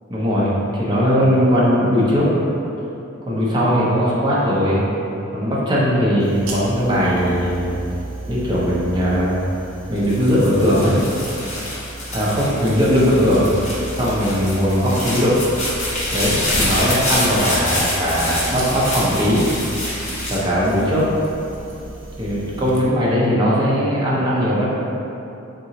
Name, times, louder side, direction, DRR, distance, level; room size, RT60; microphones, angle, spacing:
voice 1, 0.1-2.3 3.3-4.8 5.3-7.8 8.3-9.4 9.9-10.9 12.1-13.5 14.0-15.4 16.1-19.4 20.3-21.1 22.2-24.6, equal, 20° right, -7 dB, 0.6 m, -19 dB
sound 1, 6.2-22.8, right 3 dB, 75° right, 0.6 m, -35 dB
sound 2, 10.0-21.3 21.8-22.4, left 1 dB, 35° left, 1.0 m, -26 dB
3.9 x 2.8 x 2.8 m, 2.8 s
head